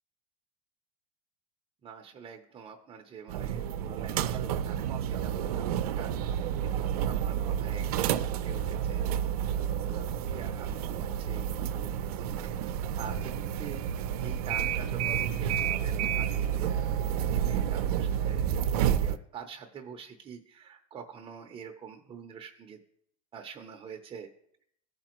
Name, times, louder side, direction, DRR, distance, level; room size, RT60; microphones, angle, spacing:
voice 1, 1.8-9.2 9.6-16.9 17.3-22.8 23.3-24.3, right 7 dB, 25° right, 2 dB, 0.7 m, -46 dB
sound 1, 3.3-19.2, right 9 dB, 85° right, 0.6 m, -30 dB
15.0 x 5.1 x 3.0 m, 0.69 s
supercardioid pair, 130°, 19 cm